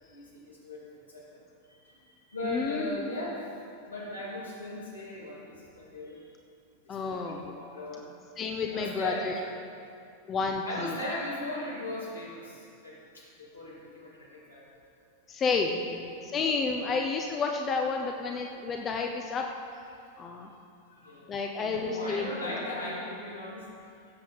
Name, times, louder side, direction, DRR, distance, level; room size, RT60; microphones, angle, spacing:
voice 1, 0.1-1.4 1.8-3.4 3.8-5.4 5.7-6.2 7.0-8.1 8.7-9.6 10.6-14.7 15.9-16.4 16.8-17.0 20.9-23.6, left 1 dB, 75° left, -5 dB, 2.7 m, -38 dB
voice 2, 2.4-3.1 6.9-7.5 8.4-9.3 10.3-11.0 15.3-19.5 20.2-20.5 21.3-22.3, left 4 dB, 25° left, 2 dB, 0.7 m, -30 dB
16.5 x 7.4 x 4.1 m, 2.4 s
figure-of-eight pair, 90°, 0 cm